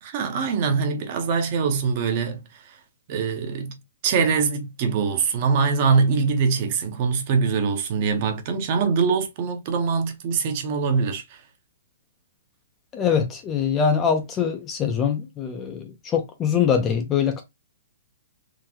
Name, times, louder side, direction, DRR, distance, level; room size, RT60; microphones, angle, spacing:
voice 1, 0.0-2.8 3.1-3.7 4.0-11.4, right 5 dB, 30° right, 0.6 m, -23 dB
voice 2, 12.9-17.4, left 7 dB, 15° left, 0.4 m, -23 dB
3.7 x 2.0 x 2.8 m
hypercardioid pair, 170°, 0 cm